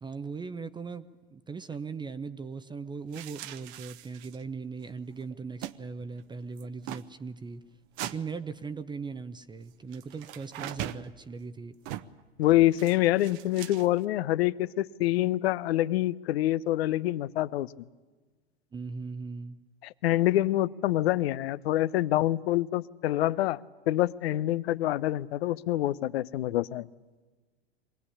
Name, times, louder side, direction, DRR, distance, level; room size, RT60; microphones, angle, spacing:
voice 1, 0.0-7.6 8.0-11.8 18.7-19.6, right 5 dB, 15° right, 0.7 m, -39 dB
sound 1, 3.1-4.5 4.8-4.9 5.1-5.8 6.0-6.2 6.6-7.1 8.0-8.2 9.9-11.1 11.8-12.2 12.7-14.0, right 13 dB, 55° right, 1.0 m, -40 dB
voice 2, 12.4-17.7 19.8-23.6 23.9-26.9, left 15 dB, 70° left, 0.7 m, -26 dB
24.0 x 16.5 x 10.0 m
hypercardioid pair, 100°, 32 cm